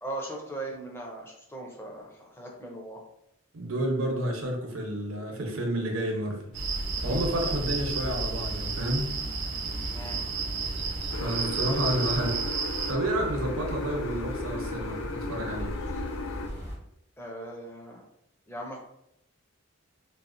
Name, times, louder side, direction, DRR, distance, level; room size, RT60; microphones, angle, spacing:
voice 1, 0.0-3.0 9.9-10.2 17.2-18.1 18.5-18.8, right 1 dB, 10° left, -1 dB, 0.5 m, -39 dB
voice 2, 3.5-6.5 7.0-9.1 11.2-12.4 12.9-15.7, right 1 dB, 80° right, 2 dB, 0.7 m, -30 dB
sound 1, 6.5-16.8, equal, 50° left, 0.8 m, -37 dB
sound 2, 6.5-12.9, right 6 dB, 60° right, 0.3 m, -33 dB
sound 3, 11.1-16.5, left 3 dB, 75° left, 0.4 m, -36 dB
4.0 x 2.1 x 2.5 m, 0.79 s
head